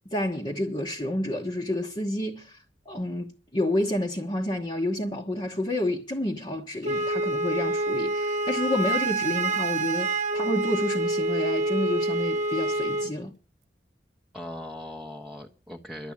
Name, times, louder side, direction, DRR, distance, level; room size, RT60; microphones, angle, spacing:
voice 1, 0.1-13.3, left 1 dB, 30° left, 1.2 m, -29 dB
Wind instrument woodwind instrument, 6.8-13.1, right 2 dB, 40° right, 1.1 m, -27 dB
voice 2, 14.3-16.1, left 1 dB, 5° right, 1.0 m, -40 dB
12.0 x 7.9 x 8.7 m
head